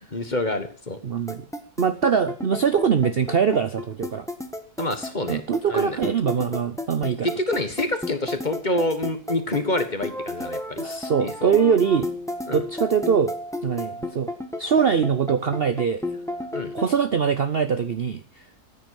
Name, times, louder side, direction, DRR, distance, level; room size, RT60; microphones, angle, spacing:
voice 1, 0.1-1.0 4.8-5.4 5.7-6.0 7.2-10.8 11.2-11.6 12.5-12.6 16.5-16.7, left 2 dB, 30° left, 9 dB, 1.6 m, -27 dB
voice 2, 1.0-1.4 1.8-4.3 5.3-7.3 10.8-12.1 12.5-13.3 13.6-14.3 14.6-16.0 16.7-18.4, right 7 dB, 50° right, 11 dB, 0.8 m, -22 dB
sound 1, 1.3-16.9, left 1 dB, ahead, 1.4 m, -32 dB
14.0 x 9.5 x 7.0 m, 0.42 s
omnidirectional pair, 1.7 m